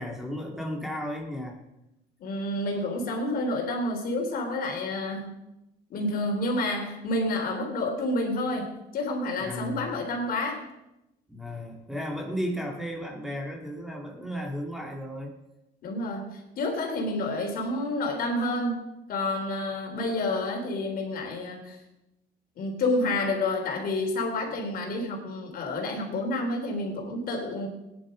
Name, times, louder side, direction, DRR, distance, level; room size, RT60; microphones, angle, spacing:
voice 1, 0.0-1.6 9.4-9.9 11.3-15.3, equal, ahead, 1 dB, 2.8 m, -34 dB
voice 2, 2.2-5.3 5.9-8.7 8.9-10.6 15.8-18.8 19.1-21.8 22.6-27.7, left 2 dB, 60° left, 2 dB, 3.6 m, -29 dB
17.5 x 10.5 x 5.3 m, 0.92 s
cardioid pair, 110°, 17 cm